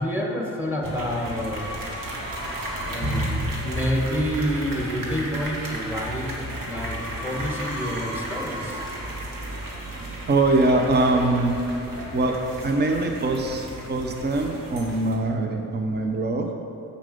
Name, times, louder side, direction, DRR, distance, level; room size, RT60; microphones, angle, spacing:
voice 1, 0.0-1.7 2.8-8.8, equal, 5° right, -2 dB, 1.7 m, -28 dB
sound 1, 0.8-15.1, right 1 dB, 75° right, 1.8 m, -33 dB
voice 2, 10.3-11.5 12.1-12.3 12.6-16.5, right 2 dB, 30° right, 3 dB, 0.8 m, -23 dB
7.7 x 7.0 x 5.4 m, 2.8 s
cardioid pair, 105°, 34 cm